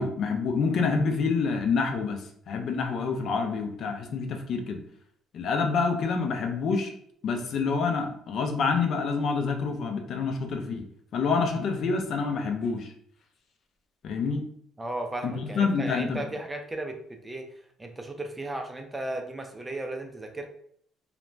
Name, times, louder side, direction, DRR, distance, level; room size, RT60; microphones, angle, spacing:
voice 1, 0.0-4.8 5.3-6.9 7.2-10.9 11.1-12.9 14.0-14.4 15.2-16.2, left 4 dB, 55° left, 4 dB, 0.4 m, -27 dB
voice 2, 14.8-20.5, right 1 dB, 15° right, 4 dB, 0.4 m, -35 dB
2.4 x 2.1 x 3.0 m, 0.64 s
cardioid pair, 115°, 0 cm